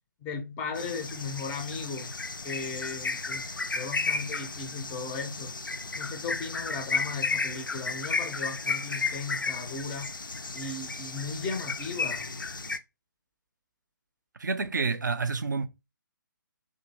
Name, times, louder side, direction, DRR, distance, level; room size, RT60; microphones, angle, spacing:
voice 1, 0.2-2.1 2.4-3.5 3.8-5.6 6.0-10.1 10.5-12.3, left 4 dB, 10° left, 0.4 m, -36 dB
sound 1, 0.8-12.8, left 4 dB, 75° left, 0.4 m, -33 dB
voice 2, 14.4-15.7, right 4 dB, 65° right, 0.4 m, -28 dB
2.6 x 2.4 x 2.7 m
figure-of-eight pair, 140°, 11 cm